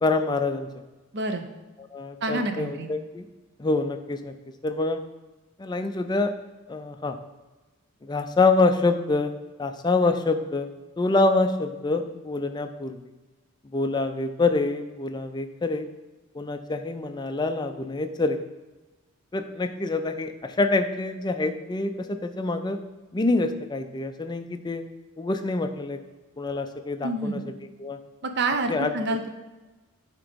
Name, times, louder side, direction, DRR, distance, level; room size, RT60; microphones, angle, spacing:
voice 1, 0.0-0.7 1.9-3.3 3.6-4.3 4.6-5.0 5.6-6.3 6.7-7.2 8.0-9.3 9.6-10.7 11.0-13.0 13.7-15.9 16.3-18.4 19.3-22.8 23.1-24.8 25.2-26.0 26.4-27.4 27.8-28.0 28.7-28.9, left 3 dB, 20° left, 7 dB, 0.3 m, -26 dB
voice 2, 1.1-1.5 2.2-2.9 27.0-27.4 28.2-29.3, right 2 dB, 50° right, 6 dB, 0.6 m, -27 dB
8.7 x 3.0 x 5.0 m, 1.2 s
head